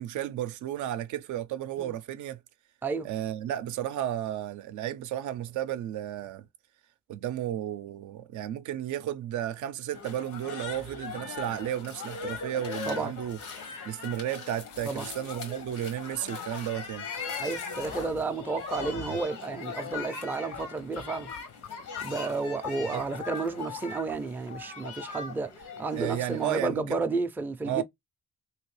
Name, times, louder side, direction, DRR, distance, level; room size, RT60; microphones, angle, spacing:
voice 1, 0.0-2.4 3.0-6.5 7.1-13.4 13.9-17.1 22.8-23.0 26.0-27.0 27.6-27.8, right 12 dB, 75° right, 0.5 m, -33 dB
sound 1, 9.9-26.5, left 5 dB, 85° left, 1.1 m, -40 dB
sound 2, 10.6-13.8 14.1-14.2 14.5-19.2 19.5-19.6 19.9-26.4, left 8 dB, 55° left, 0.5 m, -47 dB
voice 2, 17.4-21.3 22.0-25.5 25.8-27.8, right 4 dB, 5° right, 0.3 m, -32 dB
3.0 x 2.8 x 3.1 m
cardioid pair, 90°, 30 cm